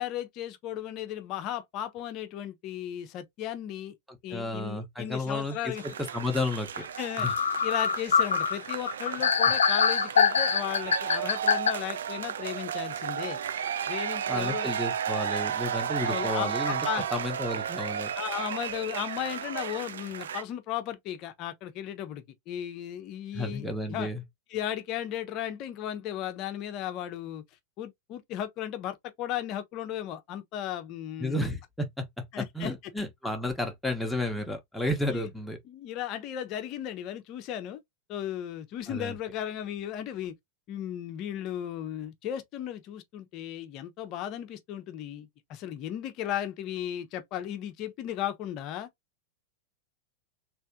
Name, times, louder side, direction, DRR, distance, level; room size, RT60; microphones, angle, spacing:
voice 1, 0.0-3.9 4.2-5.8 7.0-7.3 7.6-13.4 13.9-14.7 16.1-17.1 18.1-24.1 24.5-27.4 27.8-31.5 32.3-32.7 35.1-35.3 35.6-37.8 38.1-40.3 40.7-48.9, left 11 dB, 40° left, 0.8 m, -35 dB
voice 2, 4.1-5.7 6.1-6.8 7.2-7.3 14.3-16.8 17.1-18.1 23.3-24.2 31.2-32.0 32.5-35.6 38.9-39.1, left 1 dB, ahead, 1.1 m, -32 dB
sound 1, 5.7-20.4, right 8 dB, 65° right, 0.4 m, -33 dB
sound 2, 6.8-6.9 7.2-11.7, left 6 dB, 70° left, 0.4 m, -24 dB
3.4 x 3.3 x 2.8 m
figure-of-eight pair, 90°, 0 cm